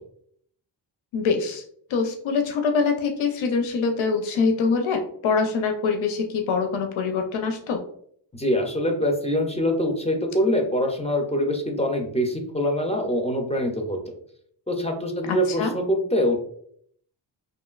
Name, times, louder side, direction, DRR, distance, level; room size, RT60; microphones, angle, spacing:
voice 1, 1.1-1.6 1.9-7.8 15.3-15.7, left 5 dB, 85° left, 4 dB, 0.5 m, -24 dB
voice 2, 8.3-14.2 14.7-16.3, equal, 15° left, 2 dB, 0.3 m, -24 dB
3.0 x 2.5 x 2.3 m, 0.64 s
wide cardioid pair, 130°, 46 cm